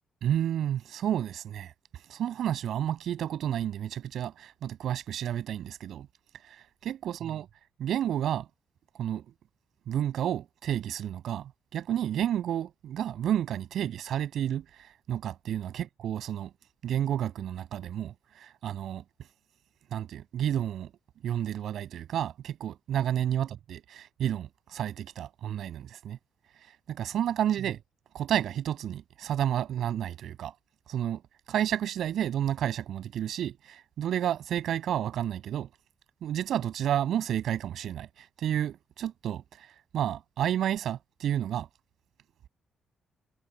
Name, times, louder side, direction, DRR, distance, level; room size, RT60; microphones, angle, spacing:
voice 1, 0.2-6.1 6.4-7.5 7.8-8.5 9.0-9.2 9.9-16.5 16.8-19.0 19.9-20.9 21.2-26.2 26.6-27.8 28.1-30.5 30.9-31.2 31.5-35.7 36.2-41.7, right 10 dB, 70° right, 7.3 m, -31 dB
cardioid pair, 90°, 0 cm